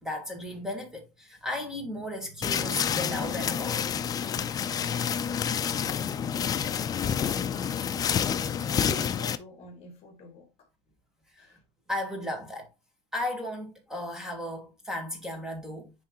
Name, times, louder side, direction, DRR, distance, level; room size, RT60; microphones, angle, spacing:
voice 1, 0.0-3.8 5.3-5.5 11.3-11.6 11.9-12.7 13.1-15.9, left 1 dB, 5° right, 1.8 m, -35 dB
sound 1, 2.4-9.4, left 8 dB, 25° left, 0.4 m, -28 dB
voice 2, 7.1-10.7 11.4-11.6, left 1 dB, 40° left, 2.2 m, -50 dB
9.8 x 3.3 x 3.0 m
cardioid pair, 160°, 15 cm